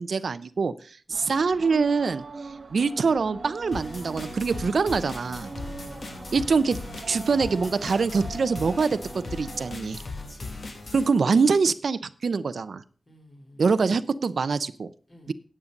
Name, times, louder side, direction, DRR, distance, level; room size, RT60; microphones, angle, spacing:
voice 1, 0.0-2.2 2.7-5.5 6.3-6.8 7.1-10.0 10.9-12.8 13.6-14.9 15.3-15.4, right 4 dB, 75° right, 14 dB, 0.6 m, -24 dB
sound 1, 1.1-9.8, right 4 dB, 55° right, 0.9 m, -42 dB
sound 2, 3.7-11.1, left 3 dB, 60° left, 1.9 m, -38 dB
voice 2, 5.5-6.1 10.1-10.6 13.1-13.6 15.1-15.3, equal, 40° left, 1 dB, 3.5 m, -50 dB
9.7 x 8.6 x 5.2 m, 0.39 s
wide cardioid pair, 120°, 0 cm